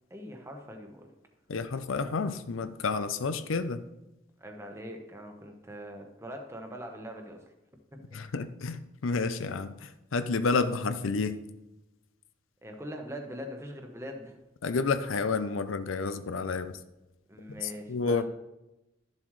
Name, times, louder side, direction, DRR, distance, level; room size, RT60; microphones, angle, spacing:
voice 1, 0.1-1.1 4.4-7.5 7.9-8.2 12.6-14.4 17.3-18.3, equal, 15° right, 3 dB, 1.1 m, -42 dB
voice 2, 1.5-3.8 8.1-11.4 14.6-16.8 17.5-18.3, left 4 dB, 85° left, 12 dB, 0.6 m, -30 dB
12.0 x 7.3 x 3.2 m, 0.95 s
head